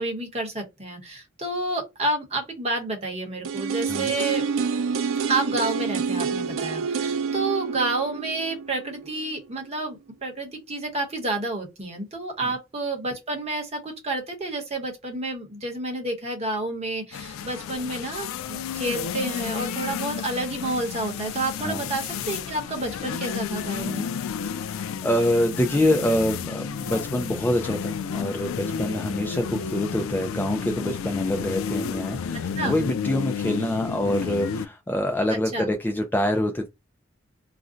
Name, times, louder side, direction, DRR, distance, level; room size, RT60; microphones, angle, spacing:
voice 1, 0.0-4.5 5.3-24.0 32.6-32.8 35.3-35.7, right 2 dB, 30° right, 0.9 m, -29 dB
sound 1, 3.4-9.4 9.7-9.8, right 5 dB, 80° right, 0.4 m, -28 dB
sound 2, 17.1-34.7, left 7 dB, 90° left, 0.3 m, -31 dB
voice 2, 25.0-36.7, left 1 dB, 10° left, 0.3 m, -25 dB
2.5 x 2.1 x 3.7 m
head